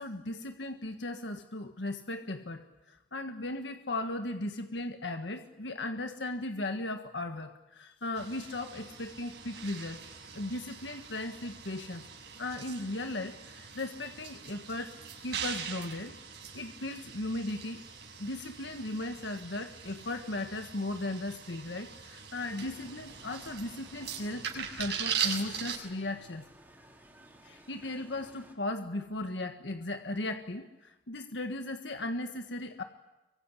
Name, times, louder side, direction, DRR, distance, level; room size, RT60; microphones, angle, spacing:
voice 1, 0.0-10.0 10.3-12.0 12.4-14.9 15.2-16.2 16.5-17.8 18.2-26.4 27.4-32.8, left 2 dB, 85° left, 6 dB, 1.6 m, -37 dB
sound 1, 8.2-25.8, right 7 dB, 65° right, 6.3 m, -41 dB
sound 2, 22.4-28.5, right 1 dB, 10° right, 4.8 m, -56 dB
25.0 x 24.0 x 10.0 m, 1.0 s
head